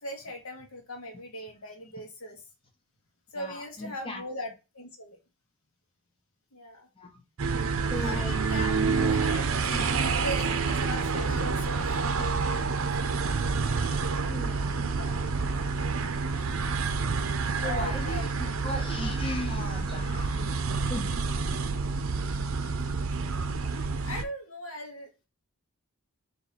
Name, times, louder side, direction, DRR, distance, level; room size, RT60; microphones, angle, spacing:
voice 1, 0.0-2.4 3.3-5.2 6.5-6.9 7.9-8.7 9.1-12.0 14.8-15.1 17.6-18.3 23.3-25.3, left 1 dB, 75° left, 1.3 m, -39 dB
voice 2, 3.3-4.2 7.0-7.2 7.9-9.3 9.7-10.0 13.7-14.9 17.5-20.6 20.9-21.4 23.9-24.1, left 1 dB, 25° left, 0.8 m, -38 dB
sound 1, 7.4-24.2, right 4 dB, 70° right, 0.5 m, -28 dB
4.3 x 2.9 x 4.1 m
head